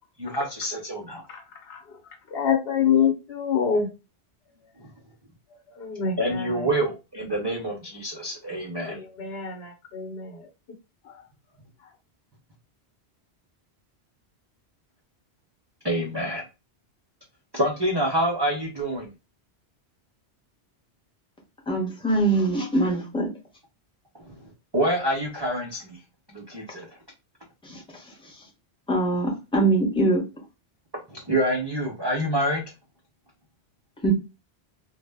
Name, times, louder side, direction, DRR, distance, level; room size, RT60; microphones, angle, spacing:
voice 1, 0.2-1.2 4.8-4.9 6.2-9.0 15.8-16.5 17.5-19.1 24.2-24.4 24.7-26.0 26.3-26.9 31.1-32.6, right 1 dB, 45° right, 0.3 m, -27 dB
voice 2, 2.3-3.9 5.8-6.1 8.9-10.3, left 7 dB, 65° left, 0.9 m, -25 dB
voice 3, 21.7-23.3 27.6-27.8 28.9-30.2 34.0-34.1, right 2 dB, 5° left, 0.6 m, -23 dB
2.0 x 2.0 x 3.3 m
omnidirectional pair, 1.1 m